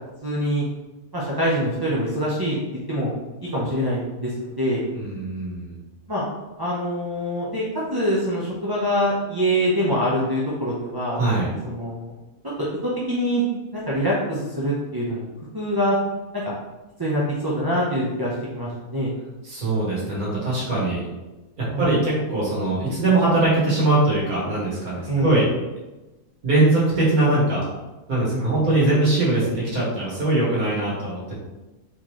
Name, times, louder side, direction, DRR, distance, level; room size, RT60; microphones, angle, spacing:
voice 1, 0.2-0.6 1.1-2.6 2.9-4.9 6.1-6.2 6.6-7.6 7.9-12.1 12.6-13.4 13.7-15.2 15.5-16.0 16.3-16.4 17.0-19.1 21.7-22.0 25.1-25.4 28.3-28.5, equal, 25° right, -6 dB, 0.6 m, -24 dB
voice 2, 4.9-5.8 11.2-11.5 19.4-21.0 21.6-25.5 26.4-27.7 28.1-31.4, right 2 dB, 75° right, -7 dB, 2.2 m, -21 dB
4.3 x 3.9 x 3.1 m, 1.1 s
omnidirectional pair, 1.5 m